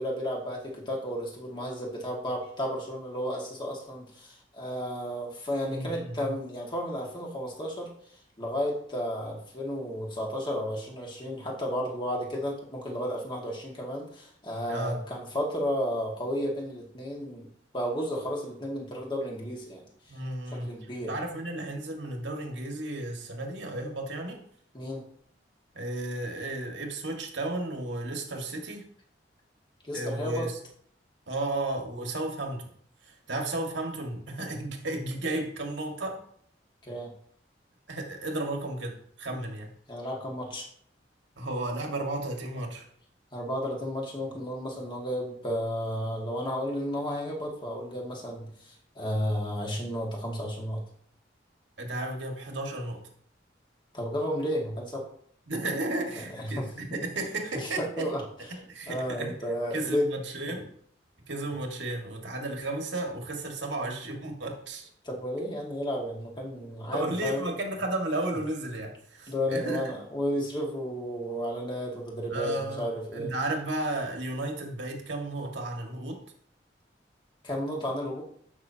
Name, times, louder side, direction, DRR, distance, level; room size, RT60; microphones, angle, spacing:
voice 1, 0.0-7.9 8.4-17.5 17.7-19.8 20.5-21.1 24.7-25.0 29.8-30.5 36.8-37.1 39.9-40.7 43.3-50.8 53.9-55.0 56.4-57.0 57.5-58.2 58.9-60.1 65.0-67.4 69.3-73.3 77.4-78.2, equal, 25° left, -2 dB, 2.0 m, -32 dB
voice 2, 5.7-6.3 14.7-15.0 20.1-24.4 25.8-28.9 29.9-30.6 31.3-32.7 33.0-36.2 37.9-39.7 41.4-42.9 51.8-53.0 55.5-58.1 58.5-59.3 59.7-60.7 61.3-64.9 66.9-69.9 72.3-72.8 73.1-76.2, right 2 dB, 80° right, 1 dB, 1.9 m, -33 dB
14.0 x 6.0 x 2.9 m, 0.63 s
head